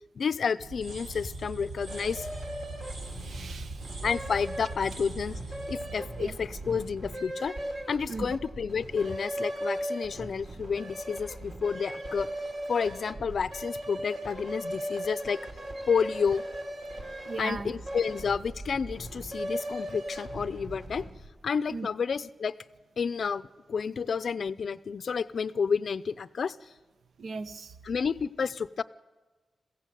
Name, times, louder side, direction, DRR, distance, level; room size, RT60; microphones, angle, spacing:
voice 1, 0.2-2.3 4.0-5.4 5.7-7.5 7.9-12.3 12.7-15.4 15.9-16.4 17.4-21.1 21.4-22.5 23.0-26.6 27.8-28.8, left 6 dB, 55° left, 15 dB, 0.5 m, -30 dB
sound 1, 0.6-7.5, right 2 dB, 90° right, 6.4 m, -42 dB
sound 2, 1.9-21.3, equal, 55° right, 3.4 m, -38 dB
voice 2, 3.2-3.7 6.2-6.4 8.1-8.3 17.3-17.7 21.7-21.9 27.2-27.7, right 4 dB, 70° right, 10 dB, 1.0 m, -37 dB
22.0 x 16.0 x 7.7 m, 1.2 s
wide cardioid pair, 145°, 0 cm